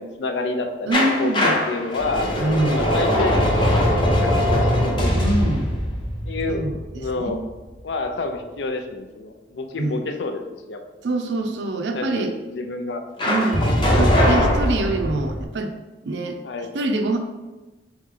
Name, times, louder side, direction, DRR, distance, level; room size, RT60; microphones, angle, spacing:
voice 1, 0.0-2.3 2.7-3.6 4.0-5.1 6.3-6.7 6.9-7.4 7.8-10.4 10.7-10.8 11.9-13.0 16.4-16.7, left 3 dB, 85° left, 6 dB, 0.5 m, -28 dB
sound 1, 0.9-7.7 13.2-15.4, equal, 25° left, 0.7 m, -21 dB
voice 2, 0.9-1.5 2.4-2.9 5.1-5.7 6.5-7.4 9.8-10.0 11.0-12.4 13.2-15.7 16.0-17.2, right 2 dB, 85° right, 5 dB, 0.5 m, -25 dB
3.7 x 3.1 x 3.7 m, 1.2 s
head